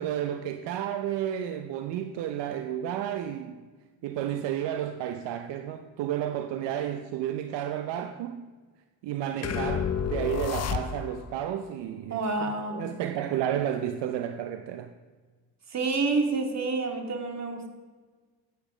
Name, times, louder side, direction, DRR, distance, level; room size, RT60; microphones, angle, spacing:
voice 1, 0.0-3.6 4.0-8.5 9.0-14.9, right 10 dB, 65° right, 0.8 m, -32 dB
sound 1, 9.4-11.3, left 8 dB, 35° left, 0.7 m, -30 dB
voice 2, 12.1-12.8 15.7-17.7, right 3 dB, 35° right, 2.2 m, -28 dB
14.5 x 8.6 x 5.0 m
cardioid pair, 100°, 45 cm